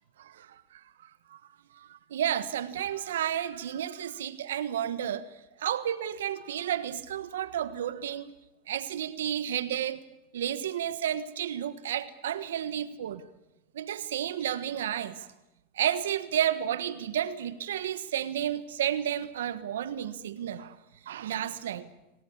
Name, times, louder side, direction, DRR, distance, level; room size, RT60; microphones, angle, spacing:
voice 1, 0.2-1.4 1.7-5.3 5.6-8.3 8.7-10.0 10.3-13.3 13.7-15.3 15.7-20.8 21.0-21.9, right 10 dB, 90° right, 1.4 m, -32 dB
25.0 x 18.0 x 8.7 m
supercardioid pair, 115°, 0 cm